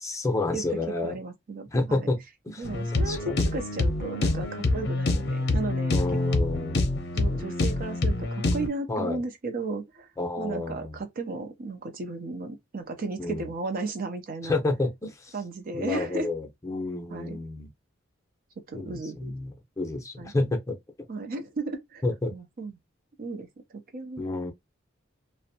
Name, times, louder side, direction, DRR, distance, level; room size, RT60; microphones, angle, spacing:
voice 1, 0.0-1.2 1.7-2.6 3.1-3.4 5.9-6.8 8.9-9.2 10.2-11.0 13.2-13.5 14.4-15.4 15.7-17.7 18.7-20.8 22.0-22.3 24.2-24.5, left 2 dB, 15° left, 0.6 m, -30 dB
voice 2, 0.5-2.1 2.6-6.0 6.3-6.5 7.1-10.1 10.4-14.6 15.3-16.3 17.1-17.4 18.6-19.3 20.2-20.3 21.1-22.0 22.3-22.8 23.2-23.5 23.9-24.3, right 3 dB, 50° right, 0.5 m, -35 dB
sound 1, 2.6-8.7, left 2 dB, 60° left, 0.6 m, -26 dB
2.6 x 2.1 x 2.7 m
head